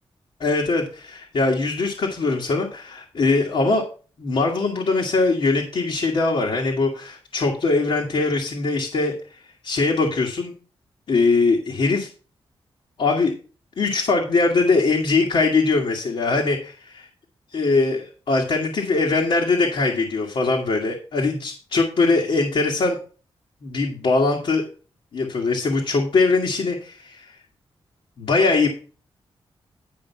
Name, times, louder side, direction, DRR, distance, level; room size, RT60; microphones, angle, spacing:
voice 1, 0.4-3.8 4.2-9.1 9.6-10.5 11.1-12.1 13.0-13.3 13.8-17.1 17.5-23.0 23.6-24.7 25.1-27.3 28.2-28.7, left 3 dB, 70° left, -1 dB, 1.9 m, -21 dB
10.5 x 5.2 x 5.6 m, 0.37 s
wide cardioid pair, 110°, 10 cm